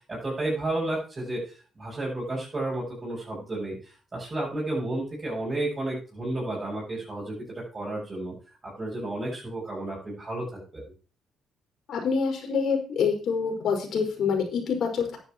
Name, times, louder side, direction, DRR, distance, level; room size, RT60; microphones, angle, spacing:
voice 1, 0.1-8.3 8.6-10.8, right 2 dB, 30° right, -7 dB, 7.4 m, -32 dB
voice 2, 11.9-15.2, left 5 dB, 65° left, 2 dB, 5.4 m, -26 dB
11.5 x 10.5 x 4.6 m, 0.38 s
cardioid pair, 90°, 0 cm